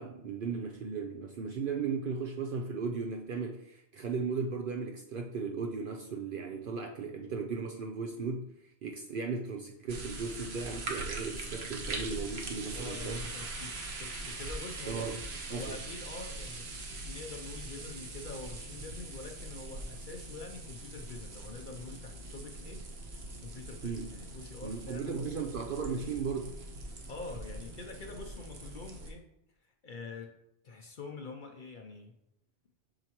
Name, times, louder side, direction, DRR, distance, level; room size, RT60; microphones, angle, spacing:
voice 1, 0.0-8.5 8.8-13.2 14.9-15.2 15.5-15.8 23.8-24.1 24.6-26.5, right 5 dB, 60° right, 2 dB, 0.7 m, -36 dB
sound 1, 9.9-29.1, right 2 dB, 75° right, 1.3 m, -42 dB
voice 2, 12.7-15.1 15.5-22.8 23.1-25.3 27.1-29.3 29.8-30.3 30.6-32.2, left 3 dB, 55° left, 3 dB, 0.8 m, -45 dB
7.6 x 5.9 x 3.0 m, 0.83 s
omnidirectional pair, 1.1 m